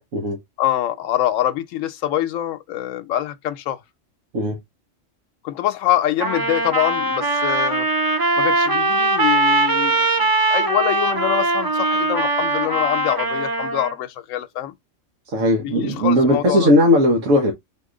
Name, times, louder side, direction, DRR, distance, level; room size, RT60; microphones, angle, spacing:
voice 1, 0.6-3.8 5.4-7.9 8.4-14.7 15.6-16.7, left 12 dB, 85° left, 1.0 m, -24 dB
Trumpet, 6.2-13.9, right 2 dB, 25° right, 0.5 m, -20 dB
voice 2, 15.3-17.5, left 1 dB, 80° right, 1.5 m, -17 dB
4.1 x 2.9 x 3.7 m
omnidirectional pair, 1.3 m